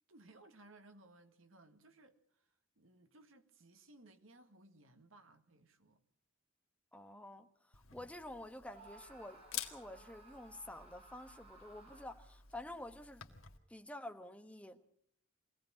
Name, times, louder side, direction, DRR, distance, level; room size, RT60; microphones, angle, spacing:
voice 1, 0.1-6.0, right 2 dB, 75° right, 1.8 m, -62 dB
voice 2, 6.9-13.3 13.7-14.8, left 1 dB, 5° left, 1.2 m, -50 dB
Camera, 7.7-13.6, left 11 dB, 85° left, 1.9 m, -51 dB
Screaming, 8.6-12.4, right 2 dB, 30° right, 6.1 m, -60 dB
23.5 x 17.5 x 6.3 m
head